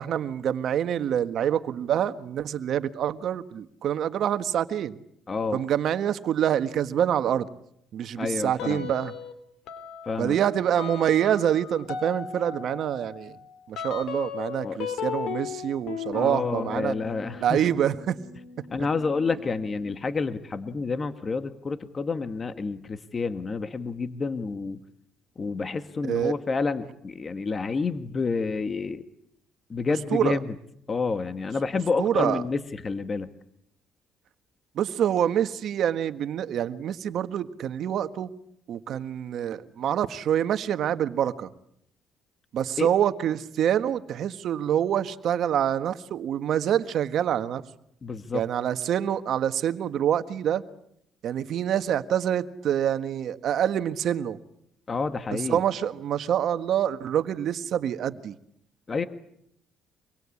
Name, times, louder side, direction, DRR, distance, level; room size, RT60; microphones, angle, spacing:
voice 1, 0.0-5.0 5.5-7.5 7.9-9.1 10.2-13.4 13.7-16.9 17.4-18.2 26.1-26.3 30.1-30.4 32.0-32.4 34.7-38.3 38.7-41.5 42.5-47.6 48.3-50.6 51.2-54.4 55.5-58.4, right 10 dB, 65° right, 10 dB, 1.6 m, -26 dB
voice 2, 5.3-5.6 8.2-8.9 10.0-10.3 14.6-14.8 16.1-17.7 18.7-24.8 25.4-29.0 29.7-30.5 30.9-33.3 42.8-42.9 48.0-48.5 54.9-55.6 58.9-59.0, left 4 dB, 35° left, 10 dB, 1.6 m, -29 dB
sound 1, 8.6-9.3 9.7-20.0, left 7 dB, 75° left, 3.6 m, -37 dB
26.0 x 23.5 x 8.6 m, 0.74 s
cardioid pair, 90°, 0 cm